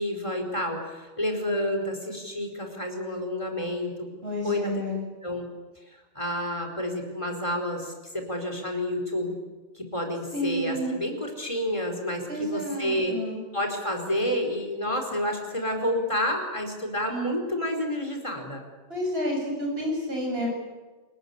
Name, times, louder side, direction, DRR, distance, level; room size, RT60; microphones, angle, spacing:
voice 1, 0.0-4.1 4.4-4.7 5.2-5.5 6.1-9.4 9.7-13.2 13.5-18.6, left 1 dB, 30° left, 3 dB, 4.7 m, -29 dB
voice 2, 4.2-5.0 10.3-10.9 12.3-13.4 18.9-20.5, equal, 70° right, 0 dB, 8.1 m, -29 dB
28.0 x 20.0 x 8.2 m, 1.2 s
omnidirectional pair, 1.1 m